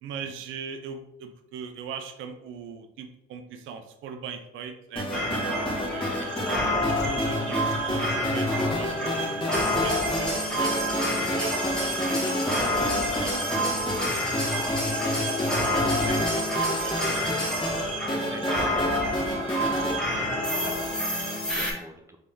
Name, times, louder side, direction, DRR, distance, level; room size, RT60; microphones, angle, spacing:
voice 1, 0.0-6.1 7.0-12.5 12.7-14.0 15.1-17.2, right 6 dB, 80° right, 6 dB, 0.5 m, -40 dB
sound 1, 5.0-20.0, left 1 dB, 25° left, 1.4 m, -30 dB
sound 2, 5.1-21.7, equal, 5° left, 1.1 m, -28 dB
voice 2, 19.3-22.2, right 1 dB, 15° right, 4 dB, 0.5 m, -48 dB
3.1 x 2.8 x 3.5 m, 0.82 s
cardioid pair, 90°, 20 cm